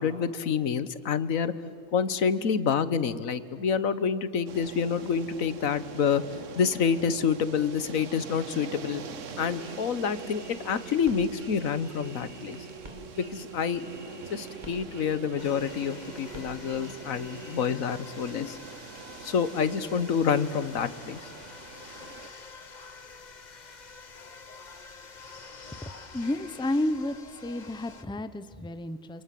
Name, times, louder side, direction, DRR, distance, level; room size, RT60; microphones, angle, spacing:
voice 1, 0.0-1.5 1.9-6.2 6.5-9.0 9.4-12.6 13.2-13.8 14.3-18.6 19.2-21.3, left 6 dB, 85° left, 14 dB, 1.5 m, -28 dB
sound 1, 4.5-22.3, right 6 dB, 70° right, 1.4 m, -45 dB
sound 2, 9.3-17.7, right 3 dB, 35° right, 3.0 m, -44 dB
sound 3, 15.4-28.0, left 4 dB, 35° left, 1.3 m, -47 dB
voice 2, 25.8-27.2 27.4-29.2, left 1 dB, 5° left, 12 dB, 0.8 m, -31 dB
28.5 x 26.5 x 7.7 m, 2.5 s
omnidirectional pair, 1.4 m